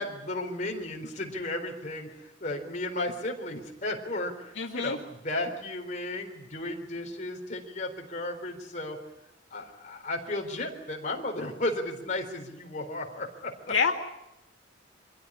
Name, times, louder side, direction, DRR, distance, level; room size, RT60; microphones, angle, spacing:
voice 1, 0.0-9.0 9.5-13.7, left 2 dB, 40° left, 2 dB, 4.0 m, -34 dB
voice 2, 4.6-5.0 13.7-13.9, left 5 dB, 80° left, 2 dB, 2.1 m, -26 dB
25.0 x 16.0 x 9.9 m, 0.87 s
head